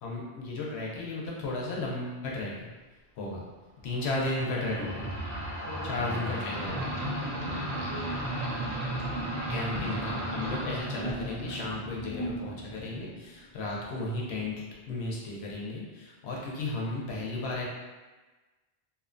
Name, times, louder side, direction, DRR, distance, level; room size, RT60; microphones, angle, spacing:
voice 1, 0.0-2.7 3.2-3.4 3.8-5.1 5.9-6.9 9.5-14.5 14.9-17.6, left 2 dB, 75° left, -3 dB, 0.9 m, -34 dB
sound 1, 4.0-13.3, right 1 dB, 85° right, 0.9 m, -34 dB
voice 2, 5.6-6.3 6.7-8.4, right 1 dB, 40° right, -10 dB, 0.5 m, -44 dB
2.6 x 2.1 x 2.5 m, 1.2 s
omnidirectional pair, 1.1 m